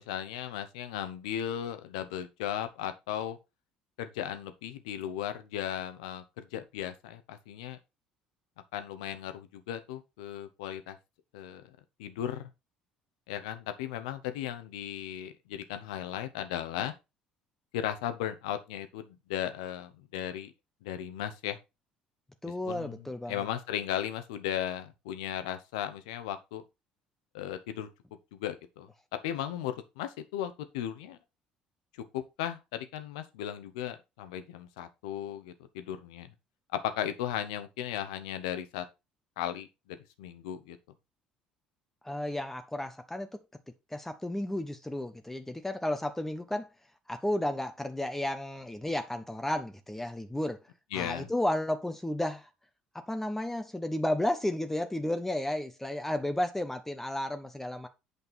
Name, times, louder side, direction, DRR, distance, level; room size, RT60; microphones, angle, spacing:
voice 1, 0.0-3.4 4.0-7.8 8.7-11.0 11.3-11.7 12.0-12.4 13.3-16.9 17.7-20.5 20.8-21.6 22.6-23.0 23.3-26.6 27.3-27.9 28.3-28.9 29.2-31.2 32.1-36.3 36.7-38.8 39.4-40.8 50.9-51.3, left 10 dB, 70° left, 1.1 m, -36 dB
voice 2, 22.4-23.4 42.0-43.4 43.9-46.7 47.1-50.6 50.9-52.5 52.9-57.9, left 1 dB, 10° left, 1.0 m, -33 dB
8.4 x 5.3 x 4.3 m
figure-of-eight pair, 55°, 4 cm